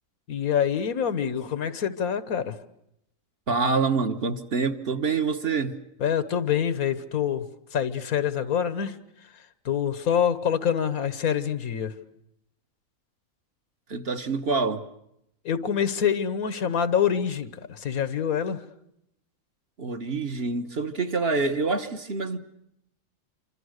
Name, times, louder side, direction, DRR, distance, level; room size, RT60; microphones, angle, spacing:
voice 1, 0.3-2.6 6.0-7.5 7.7-9.0 9.6-11.9 15.4-18.6, left 8 dB, 85° left, 1.7 m, -26 dB
voice 2, 3.5-5.7 13.9-14.8 19.8-22.4, right 4 dB, 45° right, 1.4 m, -26 dB
27.0 x 25.5 x 6.5 m
omnidirectional pair, 1.5 m